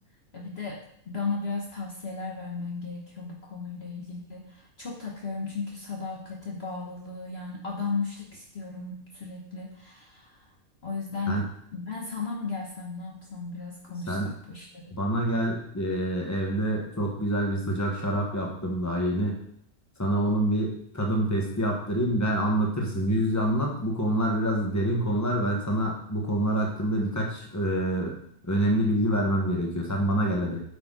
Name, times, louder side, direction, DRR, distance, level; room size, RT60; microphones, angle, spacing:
voice 1, 0.3-10.5 10.8-11.4 11.7-14.9, left 4 dB, 50° left, -2 dB, 1.3 m, -35 dB
voice 2, 14.9-19.3 20.0-28.1 28.4-30.6, right 1 dB, 10° left, -1 dB, 1.5 m, -26 dB
8.5 x 6.3 x 4.0 m, 0.69 s
omnidirectional pair, 1.5 m